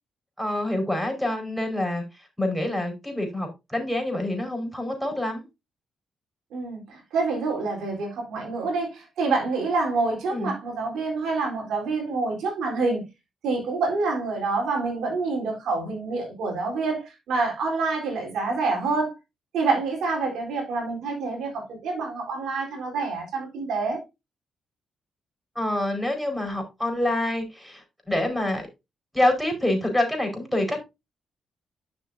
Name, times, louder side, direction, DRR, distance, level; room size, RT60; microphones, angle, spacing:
voice 1, 0.4-5.4 10.3-10.6 25.5-28.7 29.1-30.8, left 1 dB, ahead, 4.8 m, -26 dB
voice 2, 6.5-13.1 13.4-19.1 19.5-24.0, right 3 dB, 80° right, 3.8 m, -27 dB
10.5 x 6.8 x 2.7 m
supercardioid pair, 55°, 0 cm